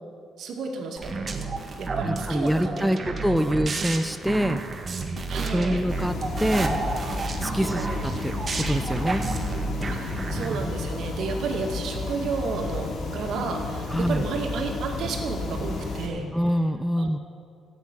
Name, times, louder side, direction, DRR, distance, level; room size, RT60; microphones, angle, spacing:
voice 1, 0.4-1.4 1.8-3.1 3.5-3.6 5.3-5.8 7.5-7.9 9.9-16.3 17.0-17.2, right 4 dB, 75° right, 2 dB, 2.2 m, -32 dB
sound 1, 1.0-10.6, right 3 dB, 40° right, 1.7 m, -31 dB
voice 2, 2.0-4.6 5.5-6.8 7.4-9.2 13.9-14.3 16.3-17.2, equal, 5° right, 9 dB, 0.6 m, -25 dB
sound 2, 5.9-16.1, left 3 dB, 60° left, 2.8 m, -32 dB
13.0 x 8.5 x 9.9 m, 2.3 s
cardioid pair, 90°, 0 cm